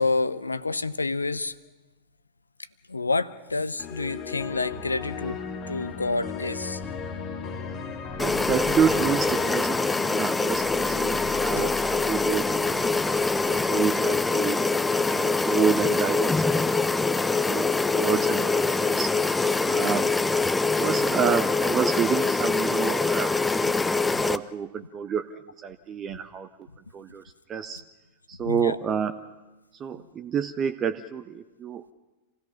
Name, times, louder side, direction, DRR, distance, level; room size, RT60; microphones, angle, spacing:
voice 1, 0.0-1.6 2.9-6.8 7.8-8.2 24.1-24.2 28.4-28.8 29.9-30.1, left 3 dB, 80° left, 16 dB, 0.7 m, -29 dB
sound 1, 3.8-13.9, left 5 dB, 35° left, 2.0 m, -36 dB
sound 2, 8.2-24.4, left 3 dB, 10° left, 0.5 m, -24 dB
voice 2, 8.2-14.6 15.1-16.8 17.5-19.1 19.6-20.1 20.8-23.3 23.6-25.3 25.6-26.5 26.9-27.2 27.5-27.8 28.3-29.2 29.8-31.9, right 7 dB, 25° right, 9 dB, 0.7 m, -29 dB
27.5 x 16.5 x 5.8 m, 1.2 s
figure-of-eight pair, 90°, 0 cm